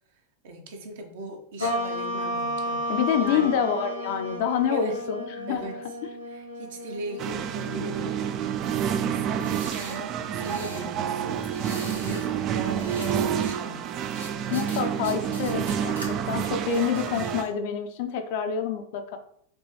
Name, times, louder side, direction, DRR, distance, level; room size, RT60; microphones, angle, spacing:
voice 1, 0.4-3.6 4.7-5.0 5.5-5.8 6.3-13.9, right 2 dB, 55° right, 3 dB, 1.0 m, -39 dB
sound 1, 1.6-8.3, equal, 85° left, 1.8 m, -33 dB
voice 2, 2.9-5.6 14.5-19.2, left 7 dB, 50° left, 7 dB, 0.6 m, -27 dB
sound 2, 7.2-17.4, right 8 dB, 35° right, 0.4 m, -29 dB
sound 3, 9.3-10.9 11.4-12.3 12.6-13.6 14.1-16.1 16.5-17.5, equal, 85° right, 1.4 m, -42 dB
5.3 x 3.0 x 3.1 m, 0.63 s
figure-of-eight pair, 90°, 0 cm